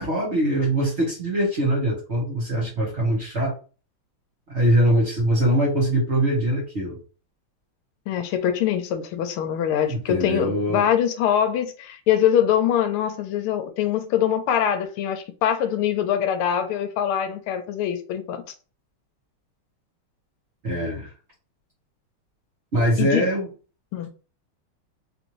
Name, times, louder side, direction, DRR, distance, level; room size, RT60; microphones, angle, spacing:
voice 1, 0.0-3.5 4.5-7.0 9.9-10.9 20.6-21.1 22.7-23.5, right 1 dB, 40° right, 1.0 m, -22 dB
voice 2, 8.1-18.4 23.0-23.2 23.9-24.1, left 9 dB, 80° left, 1.5 m, -23 dB
4.1 x 2.6 x 2.9 m
omnidirectional pair, 2.4 m